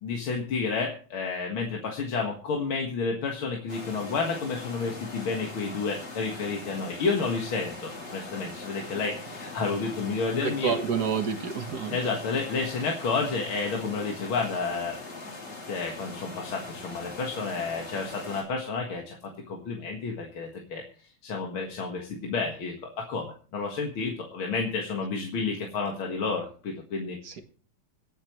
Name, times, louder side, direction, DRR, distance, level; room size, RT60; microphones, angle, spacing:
voice 1, 0.0-10.7 11.9-15.0 15.7-19.2 19.5-20.8 21.2-27.2, left 4 dB, 70° left, 0 dB, 2.5 m, -30 dB
sound 1, 3.7-18.4, left 2 dB, 50° left, 4.6 m, -41 dB
voice 2, 10.4-12.0 27.2-27.4, right 7 dB, 55° right, 7 dB, 1.7 m, -29 dB
25.5 x 8.6 x 3.1 m, 0.41 s
omnidirectional pair, 2.4 m